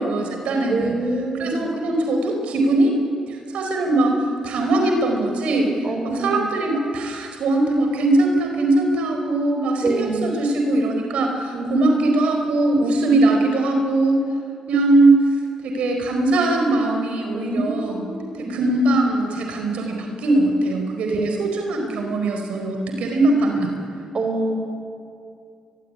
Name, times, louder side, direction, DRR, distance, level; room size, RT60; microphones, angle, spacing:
voice 1, 0.0-1.0 1.4-2.9 3.3-5.7 6.0-14.2 14.7-15.1 15.6-18.0 18.4-23.7, right 2 dB, 80° right, 3 dB, 4.7 m, -21 dB
voice 2, 0.7-1.6 5.8-6.4 9.8-10.3 11.5-11.7 17.3-18.6 21.0-21.4 24.1-24.6, right 2 dB, 45° right, 5 dB, 4.3 m, -26 dB
23.0 x 22.5 x 10.0 m, 2.5 s
cardioid pair, 75°, 2 cm